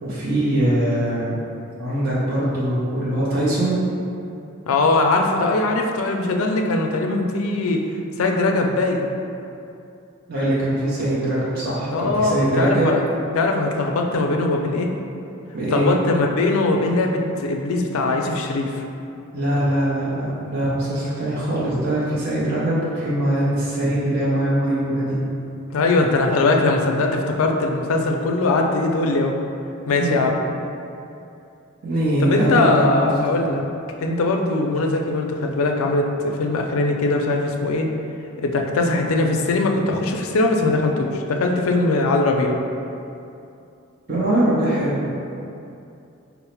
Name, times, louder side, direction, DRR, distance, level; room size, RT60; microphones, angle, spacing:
voice 1, 0.0-1.3 1.8-3.8 10.3-12.9 15.5-15.9 19.3-25.2 30.0-30.3 31.8-33.0 33.4-33.5 44.1-45.0, right 1 dB, 45° right, -8 dB, 0.7 m, -22 dB
voice 2, 4.7-7.8 8.2-9.0 11.9-13.0 13.3-14.9 15.7-18.8 25.7-29.4 29.9-30.4 32.2-33.6 34.0-37.9 38.4-42.6, left 2 dB, 75° left, 2 dB, 0.4 m, -21 dB
3.8 x 2.0 x 4.4 m, 2.7 s
head